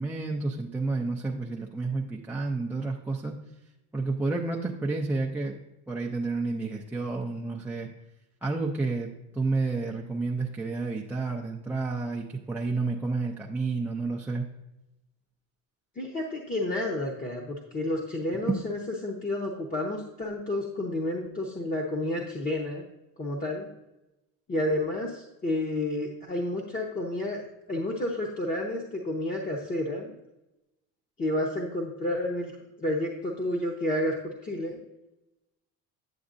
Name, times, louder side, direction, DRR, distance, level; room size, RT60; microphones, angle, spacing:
voice 1, 0.0-3.4 3.9-5.6 5.9-7.9 8.4-14.5, right 3 dB, 5° right, -2 dB, 0.3 m, -30 dB
voice 2, 16.0-22.8 23.2-23.7 24.5-27.4 27.7-30.1 31.2-32.5 32.8-34.8, left 1 dB, 25° left, -1 dB, 0.8 m, -30 dB
9.6 x 7.0 x 2.5 m, 0.95 s
cardioid pair, 135°, 37 cm